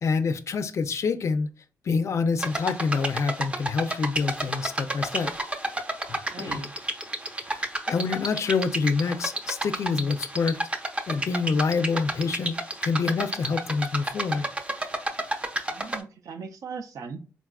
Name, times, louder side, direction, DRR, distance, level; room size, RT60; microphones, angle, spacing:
voice 1, 0.0-1.5 1.8-5.3 6.1-6.6 7.5-10.6 11.1-14.5, left 4 dB, 55° left, 0.4 m, -27 dB
sound 1, 2.4-16.0, right 1 dB, 20° right, 0.6 m, -31 dB
voice 2, 6.3-6.7 15.7-17.2, right 5 dB, 65° right, 0.5 m, -38 dB
3.9 x 2.3 x 2.3 m
supercardioid pair, 55°, 6 cm